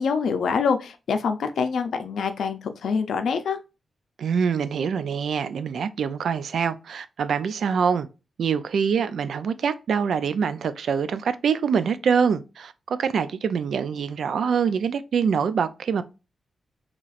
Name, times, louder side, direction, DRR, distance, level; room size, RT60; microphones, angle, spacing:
voice 1, 0.0-3.6, left 5 dB, 85° left, 0.5 m, -25 dB
voice 2, 4.2-8.1 8.4-16.0, right 6 dB, 75° right, 0.3 m, -25 dB
4.0 x 2.9 x 2.4 m
wide cardioid pair, 110°, 0 cm